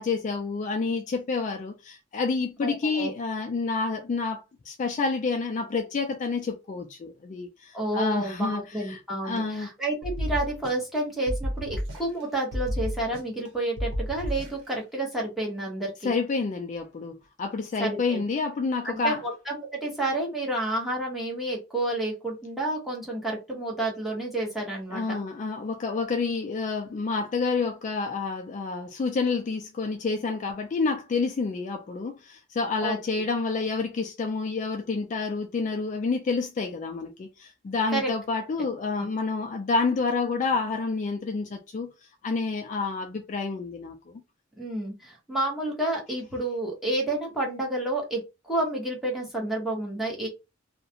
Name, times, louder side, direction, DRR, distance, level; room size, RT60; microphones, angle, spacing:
voice 1, 0.0-9.7 16.0-19.2 24.9-41.9 42.2-44.2, left 4 dB, 40° left, 0.3 m, -29 dB
voice 2, 2.6-3.1 7.7-16.1 17.8-18.2 18.9-25.2 32.8-33.0 37.9-38.1 44.6-50.3, right 1 dB, ahead, 0.9 m, -30 dB
sound 1, 10.0-11.0 11.3-12.2 12.5-13.5 13.8-14.7, equal, 75° right, 0.8 m, -31 dB
2.3 x 2.1 x 2.7 m
head